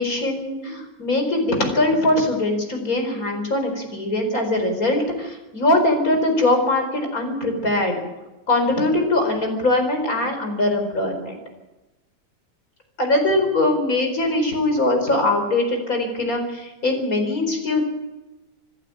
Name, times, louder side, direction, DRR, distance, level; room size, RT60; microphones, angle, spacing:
voice 1, 0.0-8.0 8.5-11.4 13.0-17.8, left 2 dB, 50° left, 4 dB, 5.0 m, -21 dB
27.0 x 11.5 x 8.6 m, 1.0 s
omnidirectional pair, 1.9 m